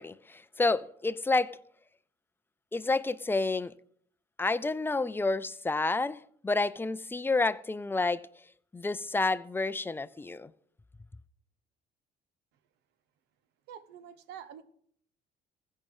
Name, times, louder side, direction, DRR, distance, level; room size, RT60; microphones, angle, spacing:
voice 1, 0.0-1.6 2.7-3.7 4.4-8.2 8.7-10.5, left 3 dB, 15° left, 0.5 m, -29 dB
voice 2, 13.7-14.6, right 9 dB, 85° right, 1.0 m, -46 dB
15.5 x 5.5 x 7.2 m
cardioid pair, 110°, 17 cm